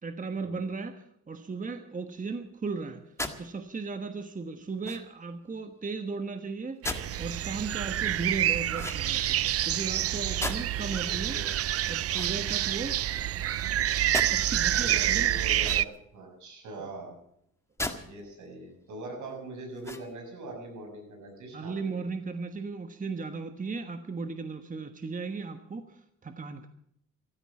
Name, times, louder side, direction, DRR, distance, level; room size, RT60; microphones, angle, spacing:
voice 1, 0.0-11.4 11.9-13.0 14.3-15.3 16.8-16.9 21.5-26.7, right 4 dB, 25° right, 8 dB, 1.3 m, -36 dB
sound 1, 3.2-3.4 4.8-5.2 6.8-7.2 8.7-9.3 10.4-10.9 12.1-12.9 14.1-14.3 15.6-16.1 17.8-18.0 18.5-18.6 19.8-20.3, left 1 dB, 10° left, 1.8 m, -36 dB
sound 2, 6.8-15.8, right 12 dB, 50° right, 0.5 m, -28 dB
voice 2, 14.6-17.1 18.0-22.0, right 2 dB, 75° right, 2 dB, 6.8 m, -42 dB
14.5 x 13.5 x 7.2 m, 0.73 s
cardioid pair, 90°, 30 cm